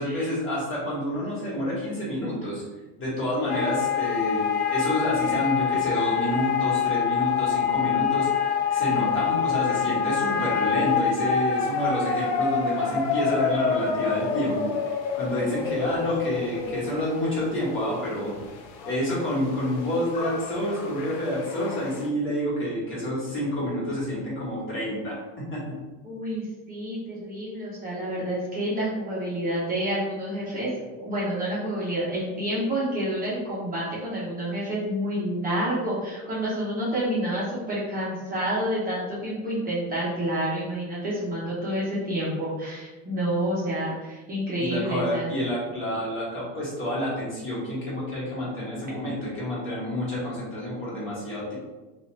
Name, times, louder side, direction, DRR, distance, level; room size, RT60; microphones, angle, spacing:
voice 1, 0.0-2.6 3.0-18.3 18.9-25.8 44.6-51.5, left 1 dB, 30° left, -7 dB, 1.4 m, -29 dB
sound 1, 3.5-22.1, left 6 dB, 60° left, 0.5 m, -27 dB
voice 2, 26.0-30.7 31.0-45.4, right 1 dB, 20° right, -8 dB, 0.7 m, -29 dB
2.8 x 2.4 x 3.1 m, 1.2 s
supercardioid pair, 140°, 40 cm